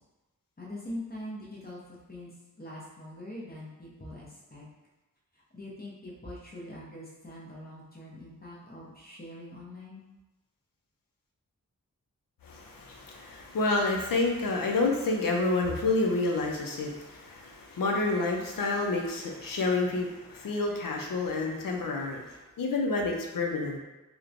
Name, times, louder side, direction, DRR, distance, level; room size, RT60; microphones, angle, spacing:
voice 1, 0.6-2.3 2.6-4.7 5.3-10.0, left 1 dB, 30° left, -5 dB, 0.7 m, -43 dB
voice 2, 12.4-22.2 22.6-23.8, left 3 dB, 75° left, 1 dB, 0.5 m, -29 dB
3.0 x 2.1 x 2.4 m, 1.1 s
wide cardioid pair, 65°, 34 cm